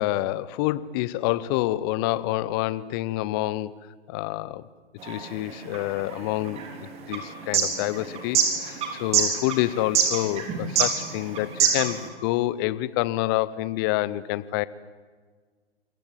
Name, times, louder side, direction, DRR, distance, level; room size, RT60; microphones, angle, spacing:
voice 1, 0.0-3.7 4.1-4.6 5.0-14.7, left 16 dB, 20° left, 19 dB, 0.6 m, -27 dB
sound 1, 5.0-12.1, right 7 dB, 20° right, 3.6 m, -25 dB
27.0 x 18.5 x 9.0 m, 1.5 s
figure-of-eight pair, 130°, 33 cm